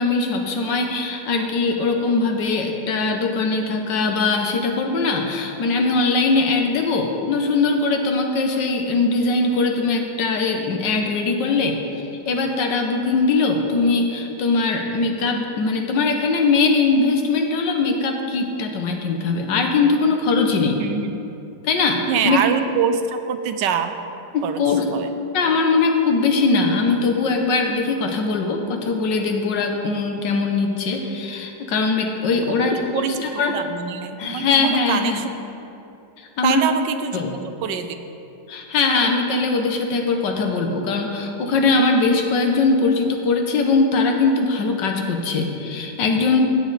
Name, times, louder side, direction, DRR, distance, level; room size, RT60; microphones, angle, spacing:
voice 1, 0.0-20.8 21.6-22.4 24.3-24.8 25.3-33.5 34.2-35.2 36.2-36.6 37.1-37.3 38.5-46.4, left 3 dB, 75° left, 3 dB, 1.6 m, -21 dB
voice 2, 20.8-21.2 22.1-24.0 24.4-24.6 24.9-25.1 32.5-35.3 36.4-37.2 37.6-38.0, right 7 dB, 75° right, 9 dB, 1.2 m, -25 dB
15.5 x 7.5 x 4.0 m, 2.8 s
omnidirectional pair, 2.0 m